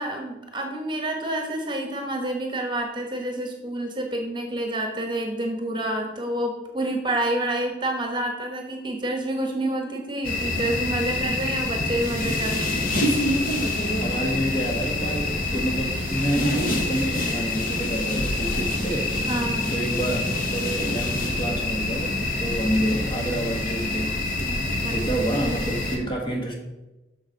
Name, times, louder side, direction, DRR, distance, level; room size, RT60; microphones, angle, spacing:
voice 1, 0.0-12.8 19.3-19.7 24.8-25.0, right 1 dB, 25° right, 3 dB, 1.2 m, -28 dB
sound 1, 10.2-26.0, left 2 dB, 50° left, 1.3 m, -26 dB
voice 2, 14.0-19.1 19.7-24.1 24.9-26.6, right 1 dB, 30° left, 0 dB, 1.5 m, -28 dB
7.2 x 6.5 x 5.2 m, 1.0 s
head